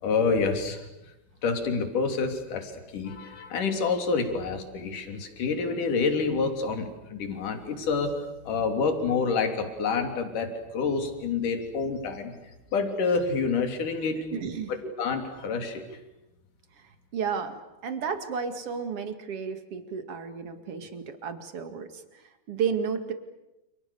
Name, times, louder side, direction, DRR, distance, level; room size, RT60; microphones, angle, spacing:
voice 1, 0.0-0.9 1.4-8.1 8.4-12.3 12.7-14.2 15.0-15.8, left 4 dB, 55° left, 5 dB, 4.6 m, -28 dB
voice 2, 14.1-14.7 16.8-23.1, right 6 dB, 45° right, 8 dB, 2.6 m, -33 dB
29.5 x 29.0 x 7.0 m, 0.96 s
omnidirectional pair, 4.4 m